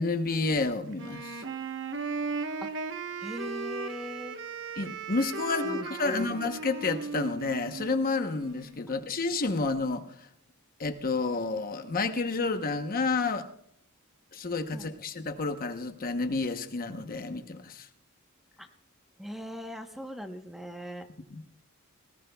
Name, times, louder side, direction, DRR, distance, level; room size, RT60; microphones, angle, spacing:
voice 1, 0.0-1.4 4.8-10.3 10.8-13.5 14.3-17.9 21.3-21.4, left 3 dB, 40° left, 8 dB, 0.9 m, -30 dB
Wind instrument woodwind instrument, 0.9-8.8, right 4 dB, 60° right, 1.1 m, -37 dB
voice 2, 3.2-4.4 5.6-6.3 14.7-14.9 18.6-18.7 19.2-21.1, equal, ahead, 5 dB, 0.9 m, -39 dB
19.0 x 18.0 x 2.3 m, 0.73 s
head